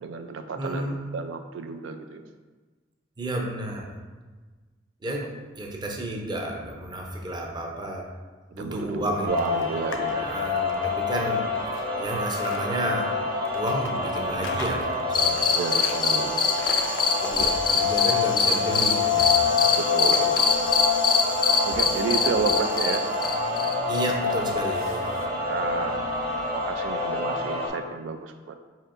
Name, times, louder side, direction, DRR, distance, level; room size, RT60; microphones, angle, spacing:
voice 1, 0.0-0.9 1.1-2.3 8.6-10.2 15.5-16.8 19.7-20.6 21.6-23.1 25.0-25.1 25.5-26.0 26.5-28.6, right 5 dB, 85° right, 7 dB, 0.3 m, -31 dB
voice 2, 0.6-1.0 3.2-3.9 5.0-5.3 5.6-8.1 8.5-9.3 10.1-11.5 12.0-13.1 13.5-15.4 17.2-19.4 23.9-25.1, right 1 dB, 25° right, 0 dB, 0.6 m, -31 dB
sound 1, 9.3-27.7, left 4 dB, 55° right, 1.4 m, -27 dB
sound 2, 9.4-10.1 10.5-12.6 13.4-16.0 16.5-17.9 18.2-19.3 19.7-20.9 21.2-25.3, left 3 dB, 85° left, 0.5 m, -40 dB
sound 3, 15.1-24.1, left 5 dB, 25° left, 0.3 m, -24 dB
4.7 x 4.3 x 2.5 m, 1.3 s
head